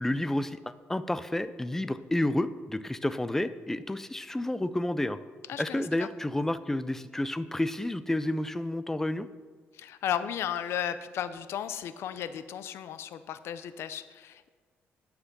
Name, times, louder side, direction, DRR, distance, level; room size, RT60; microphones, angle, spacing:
voice 1, 0.0-5.2 5.6-9.3, left 1 dB, 10° left, 14 dB, 0.4 m, -30 dB
voice 2, 5.5-6.1 9.7-14.5, left 9 dB, 70° left, 13 dB, 0.5 m, -35 dB
9.8 x 5.8 x 6.7 m, 1.5 s
cardioid pair, 115°, 4 cm